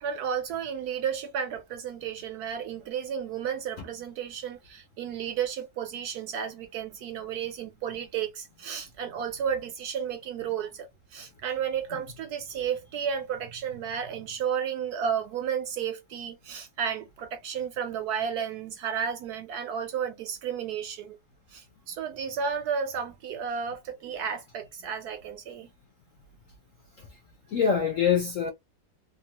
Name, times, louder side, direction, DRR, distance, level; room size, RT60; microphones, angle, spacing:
voice 1, 0.0-21.2 21.5-25.7, right 7 dB, 70° right, 1.0 m, -32 dB
voice 2, 27.5-28.5, left 7 dB, 70° left, 0.7 m, -25 dB
2.9 x 2.3 x 2.8 m
omnidirectional pair, 2.0 m